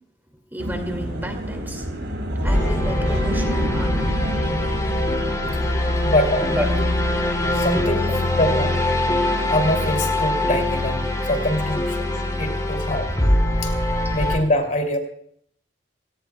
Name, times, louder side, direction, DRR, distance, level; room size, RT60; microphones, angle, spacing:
voice 1, 0.5-1.8 2.4-4.2 6.6-6.7, equal, 10° right, 4 dB, 2.3 m, -31 dB
sound 1, 0.6-12.1, equal, 65° right, 6.1 m, -31 dB
sound 2, 2.4-14.4, left 1 dB, 20° left, 3.1 m, -23 dB
voice 2, 6.0-6.6 7.5-8.8 9.5-12.1 12.4-13.1 13.6-13.7 14.1-15.0, left 1 dB, 45° left, 5 dB, 2.8 m, -24 dB
28.5 x 17.5 x 2.3 m, 0.64 s
head